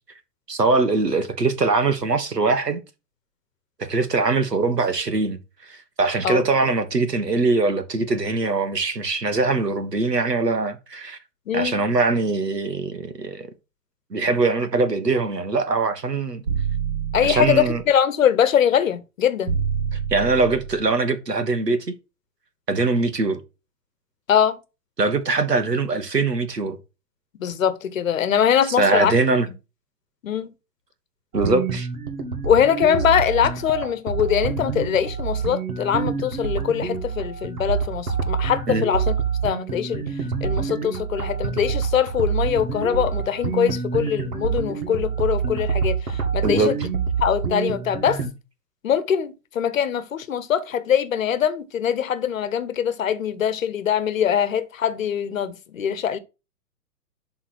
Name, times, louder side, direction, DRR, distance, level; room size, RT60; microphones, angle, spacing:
voice 1, 0.5-2.8 3.8-5.4 5.7-11.2 11.5-13.5 14.1-16.4 17.2-17.8 20.1-21.9 22.7-23.4 25.0-26.8 28.8-29.5 31.3-31.9 38.7-38.8 46.4-46.7, right 3 dB, 85° right, 1.5 m, -22 dB
voice 2, 11.5-11.8 17.1-19.6 24.3-24.6 27.4-29.1 30.2-30.5 32.4-39.1 39.4-40.0 40.4-46.8 47.2-48.2 48.8-56.2, left 9 dB, 55° left, 1.1 m, -22 dB
sound 1, 16.5-17.9 19.5-20.9, right 7 dB, 30° right, 0.4 m, -27 dB
sound 2, 31.3-48.3, right 6 dB, 65° right, 2.2 m, -27 dB
11.0 x 3.7 x 4.5 m
figure-of-eight pair, 115°, 48 cm